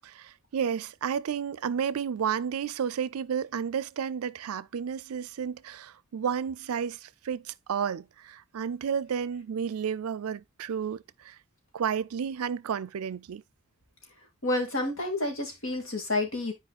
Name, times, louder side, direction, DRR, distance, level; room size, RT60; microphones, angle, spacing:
voice 1, 0.0-11.4 11.7-13.4, right 7 dB, 85° right, 0.4 m, -32 dB
voice 2, 14.4-16.5, left 2 dB, 65° left, 2.5 m, -29 dB
11.0 x 4.8 x 2.4 m
head